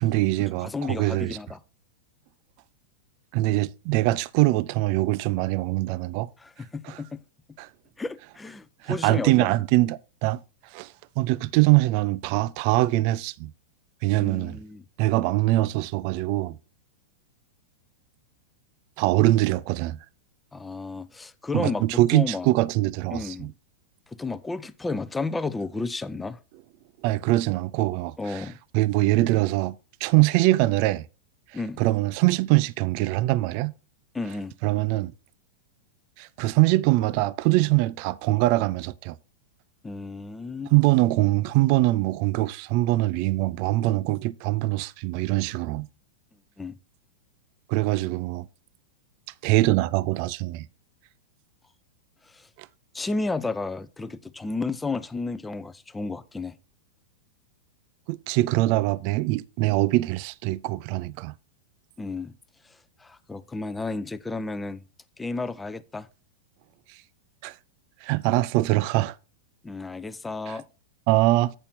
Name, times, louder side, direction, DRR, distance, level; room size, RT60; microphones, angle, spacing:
voice 1, 0.0-1.4 3.3-6.3 6.8-7.0 7.6-7.7 8.8-10.4 10.7-13.5 14.0-14.6 15.0-16.6 19.0-20.0 21.5-23.5 27.0-28.5 28.7-29.7 30.0-31.0 31.8-33.7 34.6-35.1 36.2-39.2 40.7-45.9 47.7-48.5 49.4-50.7 52.6-52.7 58.1-61.3 67.4-67.5 68.0-69.2 70.5-70.6 71.1-71.5, right 18 dB, 50° right, 0.4 m, -23 dB
voice 2, 0.6-1.6 6.4-7.2 8.0-9.5 14.2-14.8 20.5-21.8 22.1-22.5 23.1-23.5 24.2-26.4 28.2-28.6 31.5-31.8 34.1-34.5 39.8-40.7 46.6-46.8 52.3-52.5 52.9-56.6 62.0-62.3 63.0-64.8 65.2-66.1 69.6-70.6, left 3 dB, 10° left, 0.5 m, -32 dB
8.9 x 5.8 x 4.2 m
hypercardioid pair, 135°, 0 cm